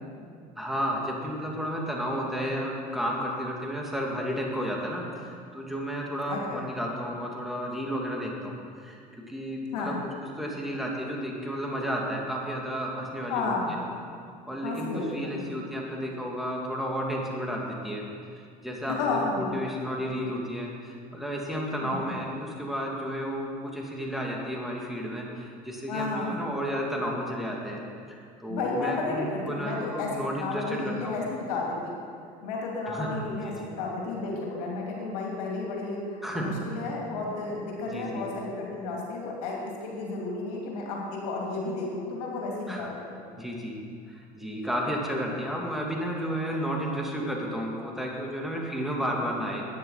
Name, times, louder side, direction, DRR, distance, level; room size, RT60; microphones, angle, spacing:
voice 1, 0.6-9.9 10.4-13.8 14.5-18.0 18.6-27.8 28.4-31.2 32.9-33.2 33.4-33.7 36.2-36.6 37.9-38.2 42.7-42.9 43.4-43.8 44.1-49.7, equal, ahead, -2 dB, 2.6 m, -32 dB
voice 2, 6.3-6.6 9.7-10.0 13.3-13.8 14.6-15.5 19.0-19.5 21.8-22.2 25.9-26.4 28.5-32.0 32.4-43.0, left 3 dB, 80° left, -2 dB, 2.8 m, -32 dB
12.5 x 9.7 x 5.8 m, 2.3 s
hypercardioid pair, 75°, 19 cm